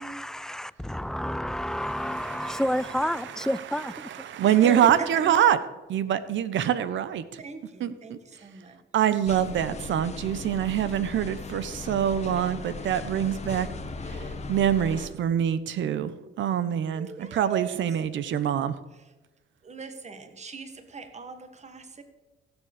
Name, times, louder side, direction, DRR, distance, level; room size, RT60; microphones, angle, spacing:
voice 1, 0.0-4.3 4.6-4.9 5.2-5.3, equal, 5° left, 0.4 m, -30 dB
voice 2, 2.0-2.6 4.0-5.6 5.9-7.2 7.8-8.2 8.9-13.7 14.1-14.2 14.5-16.1 16.4-18.7, right 10 dB, 70° right, 1.0 m, -25 dB
voice 3, 4.4-5.1 7.4-8.8 16.9-17.8 19.6-22.0, right 5 dB, 35° right, 1.7 m, -40 dB
sound 1, 9.2-15.1, left 3 dB, 35° left, 1.4 m, -38 dB
15.5 x 7.3 x 6.7 m
cardioid pair, 90°, 20 cm